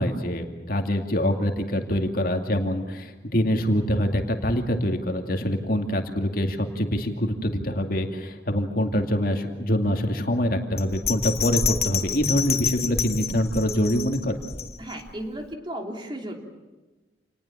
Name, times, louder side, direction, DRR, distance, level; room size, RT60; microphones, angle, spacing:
voice 1, 0.0-14.5, equal, 55° left, 4 dB, 2.5 m, -25 dB
Bell, 10.8-15.1 15.5-15.6, left 7 dB, 35° left, 1.4 m, -28 dB
voice 2, 14.8-16.4, right 1 dB, 25° right, 3 dB, 3.3 m, -34 dB
28.0 x 20.0 x 7.4 m, 1.2 s
head